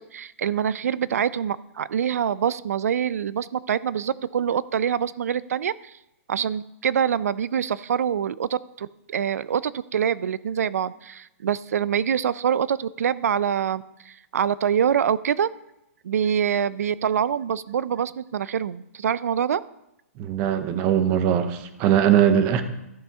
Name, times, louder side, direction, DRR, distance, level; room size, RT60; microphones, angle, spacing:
voice 1, 0.1-5.9 6.3-15.5 16.0-19.6, right 8 dB, 85° right, 18 dB, 0.4 m, -25 dB
voice 2, 20.2-22.6, right 9 dB, 20° right, 10 dB, 0.6 m, -20 dB
14.5 x 5.5 x 3.5 m, 0.89 s
hypercardioid pair, 170°, 8 cm